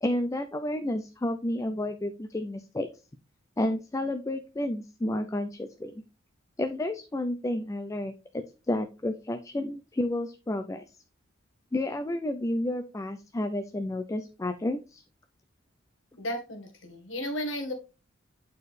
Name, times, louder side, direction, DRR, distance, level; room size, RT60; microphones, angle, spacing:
voice 1, 0.0-2.9 3.6-5.9 6.6-10.8 11.7-15.0, left 1 dB, 15° left, 8 dB, 0.4 m, -31 dB
voice 2, 16.2-17.7, equal, 75° left, 4 dB, 1.5 m, -34 dB
8.6 x 4.5 x 3.2 m, 0.30 s
head